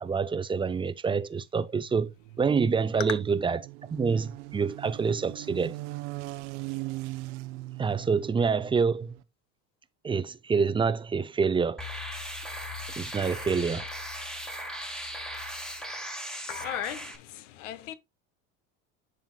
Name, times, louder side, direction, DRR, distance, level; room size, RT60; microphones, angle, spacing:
voice 1, 0.0-3.6 3.9-5.7 7.8-9.2 10.0-11.8 13.0-13.9, right 5 dB, 15° right, 0.4 m, -27 dB
sound 1, 1.6-9.2, right 20 dB, 85° right, 0.7 m, -40 dB
sound 2, 11.8-17.2, equal, ahead, 1.3 m, -37 dB
voice 2, 16.5-17.9, left 12 dB, 90° left, 0.8 m, -37 dB
11.0 x 3.9 x 2.2 m
supercardioid pair, 100°, 35 cm